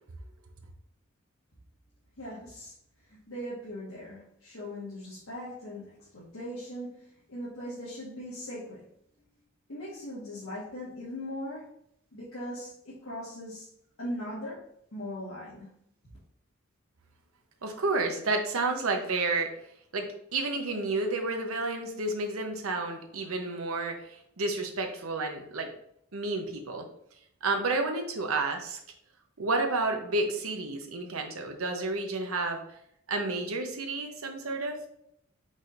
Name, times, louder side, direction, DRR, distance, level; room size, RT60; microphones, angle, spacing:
voice 1, 2.2-2.7 3.0-8.9 9.7-11.7 12.1-13.7 14.0-14.6 14.9-15.7, equal, 80° left, -8 dB, 1.4 m, -39 dB
voice 2, 17.6-19.5 19.9-25.7 26.1-26.8 27.4-28.8 29.4-32.6 33.1-34.8, right 3 dB, 85° right, 4 dB, 0.8 m, -30 dB
4.8 x 4.2 x 2.5 m, 0.73 s
head